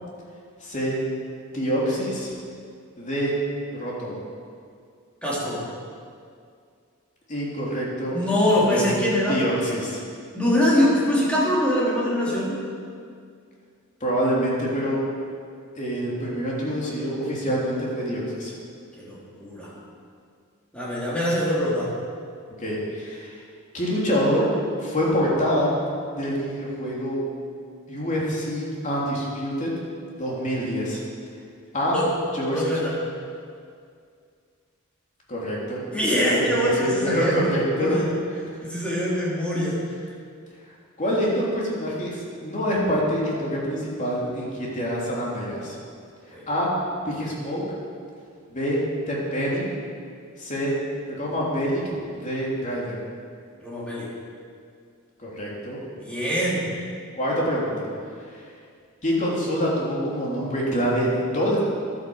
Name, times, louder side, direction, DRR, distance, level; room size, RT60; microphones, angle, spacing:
voice 1, 0.6-1.0 1.5-2.3 3.0-3.4 3.8-4.2 7.3-8.2 8.7-8.9 9.3-10.0 14.0-15.0 15.7-18.5 22.6-23.4 23.7-24.5 24.8-25.7 26.1-27.2 27.9-29.7 30.2-31.0 31.7-32.0 32.3-32.6 35.3-35.8 36.3-38.0 41.0-44.5 44.7-45.8 46.5-46.7 47.0-47.6 48.5-48.8 49.1-49.7 50.4-50.7 51.2-51.8 52.1-53.0 55.2-55.8 57.2-57.9 59.0-61.6, equal, 35° left, -5 dB, 3.3 m, -26 dB
voice 2, 5.2-5.6 8.1-9.5 10.3-12.6 19.0-19.7 20.7-21.9 31.9-32.1 32.5-33.0 35.9-37.5 37.8-38.0 38.6-39.8 46.3-46.5 53.6-54.1 56.0-56.7, equal, 5° left, -7 dB, 3.4 m, -23 dB
12.0 x 9.9 x 7.2 m, 2.3 s
head